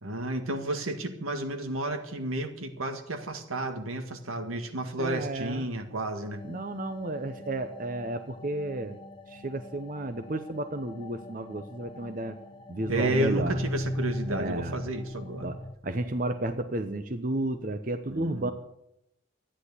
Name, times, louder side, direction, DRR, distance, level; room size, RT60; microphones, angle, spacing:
voice 1, 0.0-6.4 12.9-15.5 18.1-18.5, right 1 dB, 85° right, 6 dB, 1.9 m, -32 dB
voice 2, 5.0-5.7 6.4-9.0 9.3-12.4 12.7-13.6 14.3-14.8 15.4-18.5, right 2 dB, 40° right, 8 dB, 0.8 m, -32 dB
sound 1, 6.2-15.7, left 1 dB, 25° left, 0.8 m, -37 dB
13.5 x 10.0 x 8.3 m, 0.84 s
head